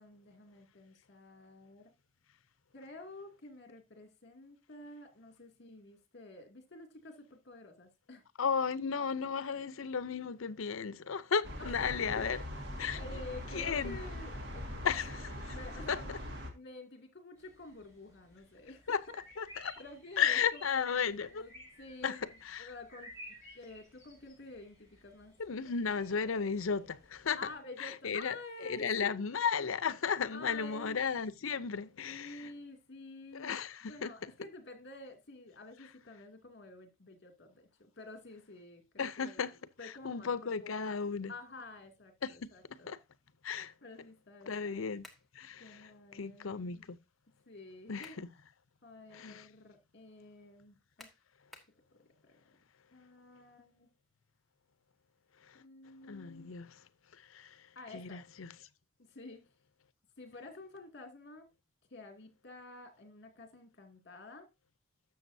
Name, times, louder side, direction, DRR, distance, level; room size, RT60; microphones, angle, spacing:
voice 1, 0.0-1.8 2.7-8.2 11.8-12.3 12.9-14.9 15.5-16.2 16.5-19.0 19.8-22.2 22.6-23.1 23.5-25.3 27.4-29.2 30.3-31.0 32.0-37.7 38.0-39.4 39.8-41.0 41.3-42.9 43.8-44.9 45.6-46.9 47.5-48.2 48.8-51.1 52.2-52.6 52.9-53.9 55.5-56.5 57.7-58.2 59.0-59.4 60.2-61.5 61.9-64.5, left 2 dB, 55° left, 2.4 m, -50 dB
voice 2, 8.4-12.4 12.8-13.0 13.5-14.0 14.8-15.6 15.9-16.0 18.9-19.0 19.4-19.8 20.2-21.4 22.0-22.2 22.4-22.7 25.4-27.4 27.8-32.5 33.3-34.1 39.0-39.6 39.8-41.3 42.2-42.3 42.9-43.0 43.4-43.7 44.5-45.0 45.3-47.0 47.9-48.3 49.1-49.5 56.0-56.8 57.3-57.6 57.9-58.5, left 6 dB, 85° left, 0.6 m, -34 dB
sound 1, 11.4-16.5, left 1 dB, 60° right, 1.9 m, -42 dB
sound 2, 17.4-27.6, equal, 15° right, 6.2 m, -56 dB
sound 3, 45.0-45.3 47.7-48.3 48.8-48.9 51.0-51.8, left 2 dB, ahead, 1.5 m, -55 dB
12.5 x 7.4 x 2.7 m
head